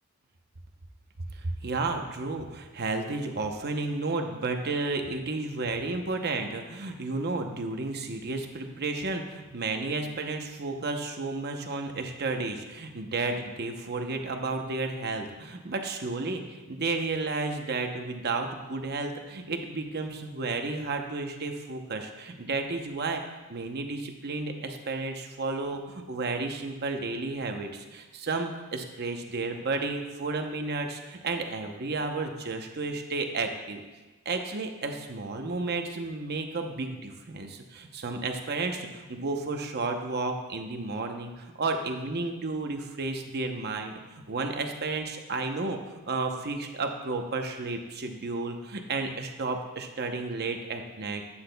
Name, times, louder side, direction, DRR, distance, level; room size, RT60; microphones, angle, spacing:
voice 1, 1.4-23.2 23.5-33.8 34.3-45.8 46.1-51.2, right 3 dB, 50° right, 4 dB, 0.8 m, -32 dB
11.5 x 8.8 x 2.2 m, 1.2 s
head